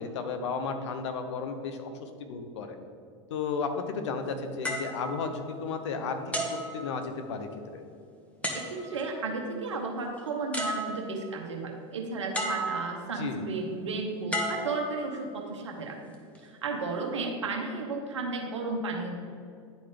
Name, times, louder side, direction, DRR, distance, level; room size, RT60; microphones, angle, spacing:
voice 1, 0.0-1.9 2.2-2.8 3.3-6.2 6.5-7.5 7.7-7.8 13.2-13.4, left 5 dB, 75° left, 7 dB, 0.8 m, -33 dB
sound 1, 4.6-5.8 6.3-7.5 8.4-9.1 10.2-10.3 10.5-11.4 12.3-13.1 14.3-15.4 16.1-16.4, equal, 10° left, 1.1 m, -34 dB
voice 2, 8.5-16.1 16.4-19.1, right 3 dB, 85° right, 1 dB, 0.9 m, -33 dB
10.5 x 3.9 x 3.4 m, 2.3 s
hypercardioid pair, 90°, 15 cm